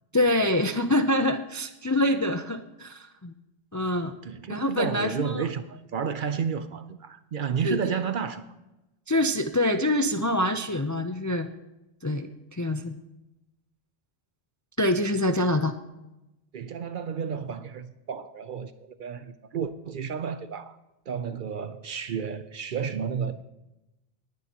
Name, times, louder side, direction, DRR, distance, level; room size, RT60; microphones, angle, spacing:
voice 1, 0.1-3.3 3.7-4.1 4.5-5.5 7.6-8.0 9.1-11.5 12.0-13.0 14.8-15.7, left 1 dB, 25° left, 0.4 m, -25 dB
voice 2, 4.2-8.4 16.5-18.7 19.0-20.8 21.1-23.4, right 7 dB, 60° right, 0.7 m, -31 dB
19.0 x 10.0 x 2.9 m
omnidirectional pair, 1.1 m